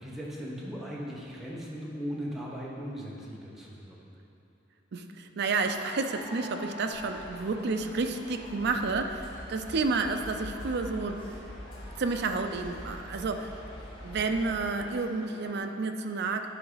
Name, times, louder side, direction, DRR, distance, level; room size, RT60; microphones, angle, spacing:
voice 1, 0.0-4.1, equal, ahead, -6 dB, 1.1 m, -38 dB
voice 2, 4.9-11.4 12.0-13.5 14.0-16.5, right 3 dB, 55° right, 6 dB, 0.4 m, -30 dB
sound 1, 5.7-15.6, equal, 25° left, 1.2 m, -48 dB
sound 2, 6.9-14.7, equal, 85° left, 1.6 m, -45 dB
10.5 x 4.7 x 4.0 m, 2.8 s
head